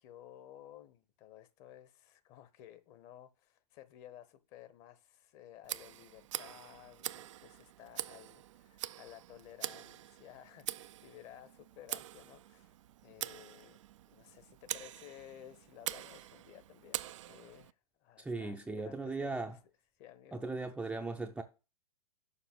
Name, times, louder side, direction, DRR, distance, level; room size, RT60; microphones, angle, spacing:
voice 1, 0.0-13.8 14.1-19.5 20.0-20.4 20.8-21.1, left 12 dB, 35° left, 1.1 m, -55 dB
Tick, 5.6-17.7, right 13 dB, 50° right, 0.4 m, -44 dB
voice 2, 18.2-19.6 20.3-21.4, right 3 dB, 5° right, 0.6 m, -38 dB
7.1 x 5.4 x 7.1 m
figure-of-eight pair, 105°, 20 cm